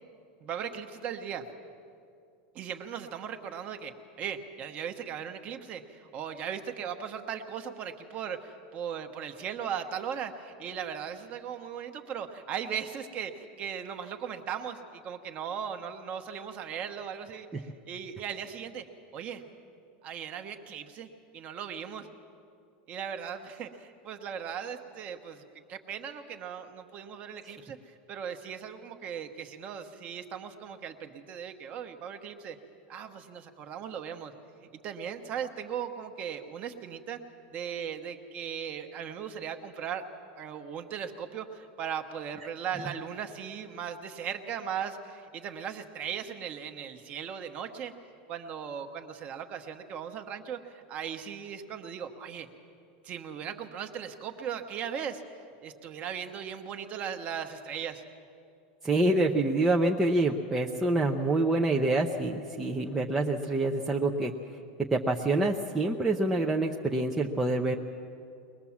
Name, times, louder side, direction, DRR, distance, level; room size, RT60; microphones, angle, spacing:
voice 1, 0.4-1.4 2.5-18.8 19.1-19.4 20.0-22.1 22.9-25.4 25.7-32.6 32.9-34.3 34.7-37.2 37.5-40.1 40.4-47.9 48.3-52.5 53.0-55.2 55.6-58.0, right 8 dB, 25° right, 7 dB, 1.1 m, -38 dB
voice 2, 58.8-64.3 64.9-67.8, right 2 dB, 5° right, 0 dB, 0.6 m, -26 dB
22.0 x 20.0 x 7.3 m, 2.4 s
supercardioid pair, 175°, 5 cm